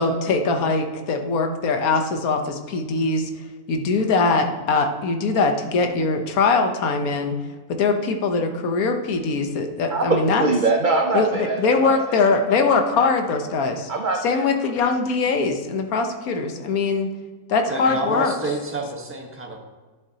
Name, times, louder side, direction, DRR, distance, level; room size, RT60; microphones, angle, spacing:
voice 1, 0.0-3.3 3.7-7.3 7.7-10.4 11.1-13.9 14.2-17.1 17.5-18.3, left 4 dB, 70° left, 5 dB, 1.3 m, -22 dB
voice 2, 9.9-12.6 13.9-14.5, right 3 dB, 55° right, 2 dB, 0.5 m, -23 dB
voice 3, 17.7-19.6, right 2 dB, 10° right, 1 dB, 0.9 m, -28 dB
11.0 x 6.9 x 2.8 m, 1.3 s
omnidirectional pair, 1.7 m